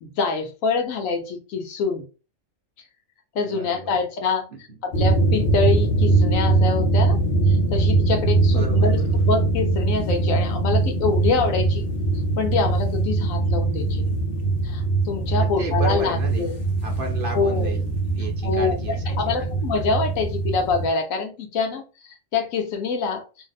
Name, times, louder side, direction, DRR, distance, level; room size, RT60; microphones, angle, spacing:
voice 1, 0.0-2.0 3.3-4.5 4.8-7.2 7.5-9.0 9.3-11.9 12.4-14.0 14.6-16.5 17.3-17.8 18.4-23.2, left 4 dB, 90° left, 1.1 m, -25 dB
voice 2, 3.5-4.0 4.5-4.6 8.5-9.2 15.3-16.5 16.8-19.6, right 3 dB, 50° right, 0.8 m, -34 dB
sound 1, 4.9-20.9, right 3 dB, 55° left, 0.9 m, -22 dB
2.8 x 2.1 x 3.9 m
omnidirectional pair, 1.3 m